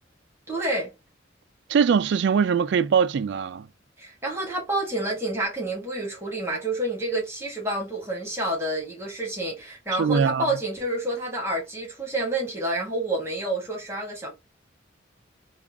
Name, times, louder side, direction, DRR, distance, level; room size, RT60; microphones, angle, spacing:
voice 1, 0.5-0.9 4.0-14.3, right 1 dB, 15° right, 1.4 m, -29 dB
voice 2, 1.7-3.7 9.9-10.6, right 6 dB, 65° right, 0.3 m, -22 dB
3.5 x 2.4 x 3.4 m
head